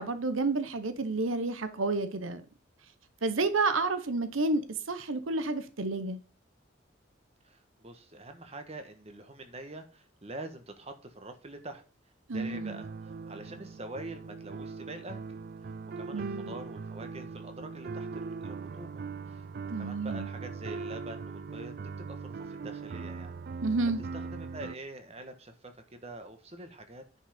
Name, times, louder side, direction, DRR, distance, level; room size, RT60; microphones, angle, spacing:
voice 1, 0.0-2.4 3.2-6.2 12.3-12.8 16.1-16.5 19.7-20.3 23.6-24.0, right 3 dB, 90° right, 1.0 m, -30 dB
voice 2, 7.4-11.8 12.3-23.3 24.1-27.0, right 2 dB, 30° right, 1.5 m, -45 dB
sound 1, 12.3-24.8, right 4 dB, 50° right, 0.4 m, -40 dB
9.8 x 5.6 x 5.1 m
head